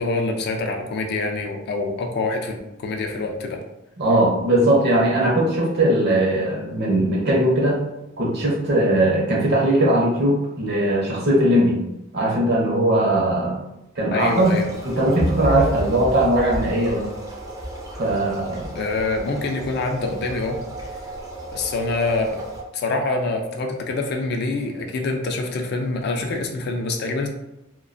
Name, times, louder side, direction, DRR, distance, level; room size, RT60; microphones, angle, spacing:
voice 1, 0.0-3.6 14.1-14.6 18.7-20.6 21.5-22.4 22.7-27.3, left 3 dB, 50° left, 3 dB, 0.3 m, -25 dB
voice 2, 4.0-7.8 8.2-11.8 12.1-13.6 14.0-14.5 15.0-17.0 18.0-18.7, right 1 dB, 50° right, -2 dB, 0.7 m, -19 dB
sound 1, 14.2-22.6, right 1 dB, 15° right, 0.4 m, -32 dB
2.4 x 2.2 x 2.4 m, 0.91 s
head